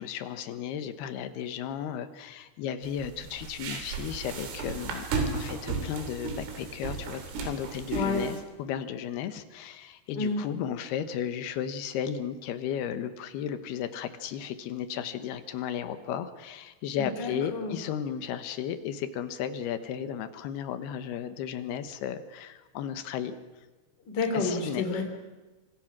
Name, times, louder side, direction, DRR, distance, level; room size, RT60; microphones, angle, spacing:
voice 1, 0.0-5.0 5.3-23.4 24.3-24.8, left 9 dB, 70° left, 10 dB, 2.9 m, -34 dB
sound 1, 2.8-8.4, right 4 dB, 90° right, 5.7 m, -34 dB
voice 2, 17.0-17.8 24.1-25.0, left 3 dB, 25° left, 4 dB, 2.9 m, -29 dB
26.0 x 25.5 x 6.1 m, 1.2 s
omnidirectional pair, 5.5 m